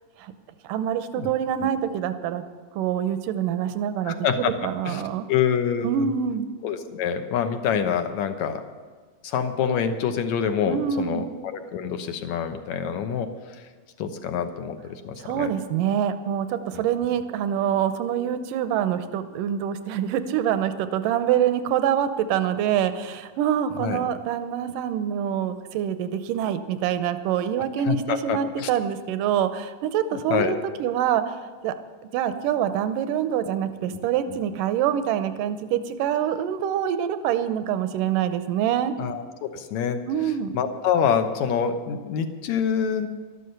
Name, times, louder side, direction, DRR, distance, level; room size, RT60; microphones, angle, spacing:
voice 1, 0.6-2.5 2.8-5.3 5.8-6.5 10.7-11.2 15.2-31.4 31.6-31.7 32.1-38.9 40.1-40.5, right 9 dB, 85° right, 10 dB, 2.4 m, -25 dB
voice 2, 4.1-4.5 4.9-5.0 5.3-6.1 6.6-8.6 9.2-13.3 14.0-15.5 16.7-16.8 23.8-24.0 27.9-28.7 30.3-30.5 33.8-34.0 34.3-34.4 39.0-40.0 40.5-43.1, left 7 dB, 70° left, 7 dB, 2.1 m, -26 dB
12.5 x 12.5 x 6.6 m, 1.5 s
omnidirectional pair, 3.8 m